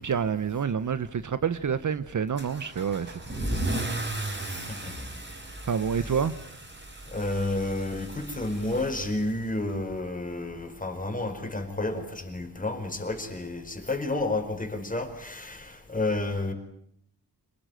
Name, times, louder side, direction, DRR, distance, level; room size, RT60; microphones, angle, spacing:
voice 1, 0.0-3.2 5.6-6.3, right 7 dB, 50° right, 1.0 m, -28 dB
Car / Engine starting / Accelerating revving vroom, 2.4-9.7, right 1 dB, 30° right, 5.8 m, -35 dB
voice 2, 7.1-16.5, left 2 dB, 20° left, 4.8 m, -31 dB
27.0 x 19.5 x 9.2 m
wide cardioid pair, 105°, 39 cm